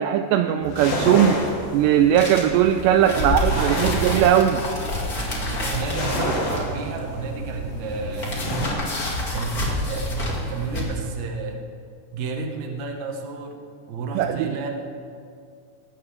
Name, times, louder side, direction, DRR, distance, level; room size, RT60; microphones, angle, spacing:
voice 1, 0.0-1.4 1.7-4.7 14.2-14.5, right 10 dB, 90° right, 8 dB, 2.4 m, -19 dB
sound 1, 0.6-8.7, equal, 70° left, 5.1 m, -30 dB
sound 2, 2.1-10.8, left 1 dB, 40° left, 1.4 m, -29 dB
voice 2, 3.1-4.0 5.4-8.5 9.3-11.6 12.1-13.6 13.9-14.7, right 4 dB, 65° right, 2 dB, 1.8 m, -31 dB
19.0 x 15.5 x 3.5 m, 2.3 s
omnidirectional pair, 5.4 m